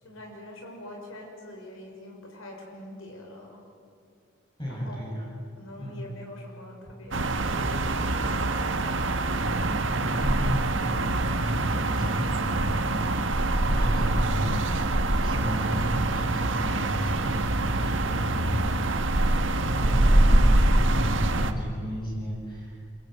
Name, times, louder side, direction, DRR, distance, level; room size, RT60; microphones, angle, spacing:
voice 1, 0.0-3.6 4.7-5.0 5.6-8.9, left 1 dB, 85° left, 1 dB, 6.6 m, -44 dB
voice 2, 4.6-5.3 5.8-6.0 9.3-19.3 19.7-22.8, equal, 20° left, -3 dB, 7.8 m, -33 dB
sound 1, 7.1-21.5, right 2 dB, 65° right, 1.5 m, -24 dB
26.0 x 23.0 x 9.4 m, 2.3 s
head